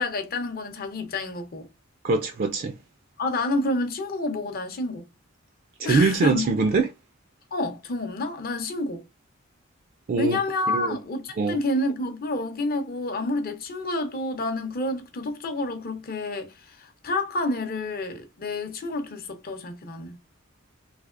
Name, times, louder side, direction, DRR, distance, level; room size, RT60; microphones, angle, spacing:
voice 1, 0.0-1.7 3.2-5.0 5.8-6.5 7.5-9.0 10.2-20.2, left 2 dB, 45° left, 0.7 m, -29 dB
voice 2, 2.0-2.7 5.8-6.9 10.1-10.4 10.7-11.0 11.4-11.6, right 4 dB, 40° right, 0.3 m, -23 dB
3.3 x 2.8 x 2.4 m
head